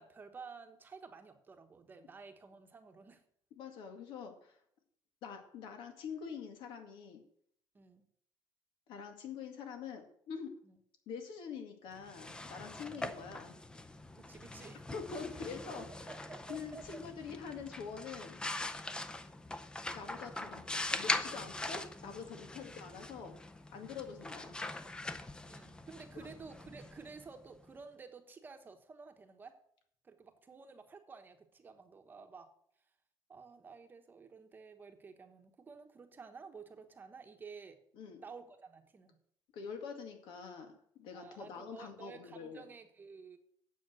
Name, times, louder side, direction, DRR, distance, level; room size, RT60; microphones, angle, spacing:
voice 1, 0.0-3.2 7.7-8.1 10.6-10.8 12.7-13.0 14.1-14.8 16.1-17.0 25.5-29.6 30.0-32.5 33.3-37.8 38.2-39.2 41.1-43.4, right 5 dB, 25° right, 6 dB, 1.1 m, -52 dB
voice 2, 3.5-4.6 5.2-7.2 8.9-10.6 11.1-13.6 14.9-15.9 16.5-18.4 19.9-23.4 23.7-24.6 26.2-26.3 37.9-38.2 39.5-42.6, left 6 dB, 80° left, 5 dB, 2.0 m, -45 dB
sound 1, 12.0-27.6, left 2 dB, 10° left, 0.6 m, -42 dB
9.2 x 7.4 x 6.2 m, 0.67 s
cardioid pair, 160°, 8 cm